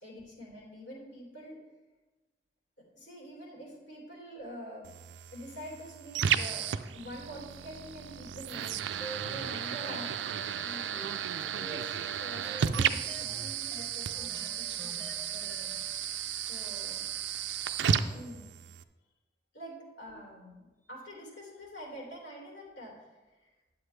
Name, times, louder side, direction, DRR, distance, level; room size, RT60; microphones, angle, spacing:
voice 1, 0.0-1.6 2.8-4.9 5.3-6.7 6.9-8.8 9.3-10.2 10.6-11.0 11.6-15.8 16.5-17.0 18.0-18.5 19.5-23.5, equal, 80° left, -4 dB, 3.0 m, -46 dB
sound 1, 4.8-18.8, right 8 dB, 85° right, 0.4 m, -34 dB
sound 2, 9.0-15.9, equal, 15° left, 0.8 m, -48 dB
9.5 x 7.7 x 3.3 m, 1.2 s
head